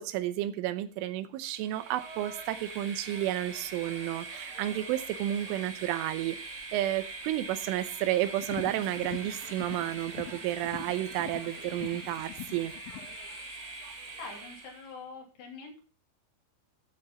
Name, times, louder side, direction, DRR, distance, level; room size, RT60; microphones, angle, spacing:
voice 1, 0.0-12.7, right 13 dB, 90° right, 12 dB, 3.4 m, -32 dB
Train, 1.5-15.0, right 3 dB, 60° right, 4.2 m, -43 dB
sound 1, 8.3-13.2, left 14 dB, 85° left, 3.0 m, -44 dB
voice 2, 14.2-15.8, left 4 dB, 60° left, 1 dB, 4.6 m, -44 dB
14.0 x 8.8 x 4.1 m, 0.39 s
omnidirectional pair, 5.5 m